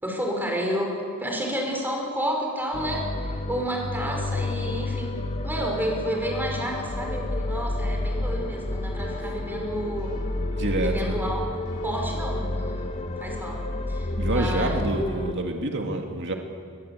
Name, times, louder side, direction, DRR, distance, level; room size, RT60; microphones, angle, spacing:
voice 1, 0.0-10.2 10.7-11.4 11.8-13.6 13.9-14.8, equal, 10° right, 0 dB, 5.2 m, -31 dB
sound 1, 2.7-15.3, left 2 dB, 30° left, 0.9 m, -30 dB
sound 2, 9.0-14.3, left 2 dB, 75° left, 4.6 m, -49 dB
voice 2, 10.5-11.2 14.2-16.3, right 2 dB, 55° right, 2 dB, 2.3 m, -27 dB
21.5 x 21.5 x 8.5 m, 2.1 s
head